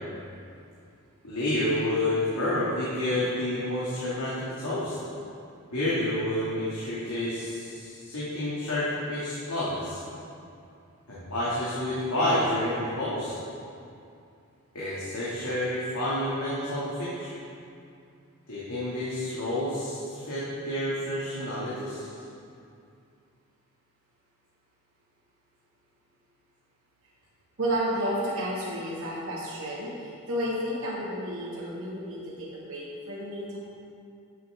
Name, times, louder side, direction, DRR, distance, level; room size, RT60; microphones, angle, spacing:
voice 1, 1.2-5.0 5.7-10.0 11.1-13.4 14.7-17.3 18.5-22.1, left 1 dB, 85° left, -10 dB, 2.4 m, -29 dB
voice 2, 27.6-33.6, equal, 75° right, -8 dB, 2.1 m, -31 dB
13.0 x 7.6 x 3.7 m, 2.5 s
head